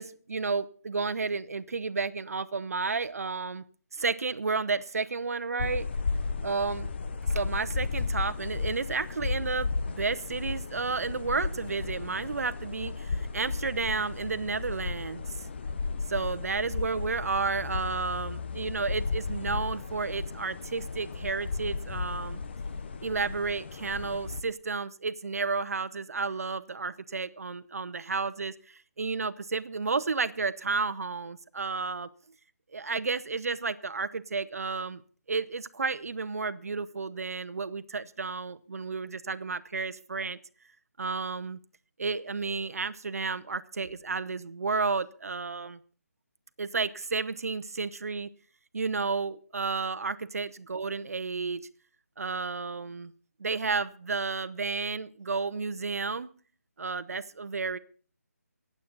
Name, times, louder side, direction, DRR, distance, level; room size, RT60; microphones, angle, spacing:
voice 1, 0.0-3.6 3.9-5.9 6.4-6.9 7.3-15.2 16.1-22.4 23.0-28.5 29.0-32.1 32.7-35.0 35.3-40.4 41.0-41.6 42.0-45.8 46.6-48.3 48.7-51.6 52.2-53.1 53.4-56.3 56.8-57.8, right 4 dB, 70° right, 14 dB, 0.9 m, -32 dB
sound 1, 5.6-24.4, left 4 dB, 40° left, 0.9 m, -34 dB
24.5 x 8.6 x 4.0 m, 0.41 s
figure-of-eight pair, 165°, 9 cm